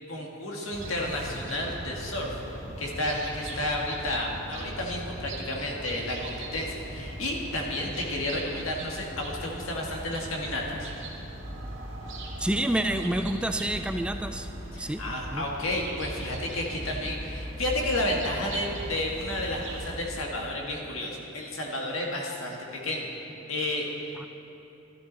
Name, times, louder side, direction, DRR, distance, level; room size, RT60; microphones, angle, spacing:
voice 1, 0.1-2.3 2.8-10.9 14.7-23.1 23.5-24.3, left 1 dB, 80° left, -1 dB, 1.8 m, -31 dB
sound 1, 0.7-20.0, right 1 dB, 70° right, 1.7 m, -39 dB
voice 2, 12.4-14.5 14.8-15.0 15.3-15.4 24.2-24.3, right 1 dB, 5° right, 7 dB, 0.3 m, -28 dB
13.0 x 12.0 x 4.1 m, 2.9 s
head